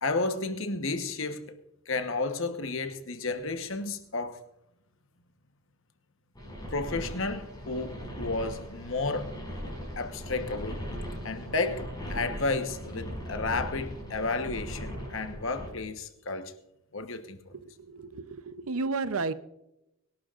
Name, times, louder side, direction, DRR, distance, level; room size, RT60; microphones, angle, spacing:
voice 1, 0.0-1.5 1.9-4.4 6.7-9.3 10.0-10.8 11.2-16.5 16.9-17.4, left 3 dB, 60° left, 1.1 m, -32 dB
sound 1, 6.4-15.7, equal, 20° left, 5.5 m, -39 dB
voice 2, 17.5-19.3, right 3 dB, 75° right, 0.7 m, -33 dB
24.5 x 12.0 x 2.5 m
head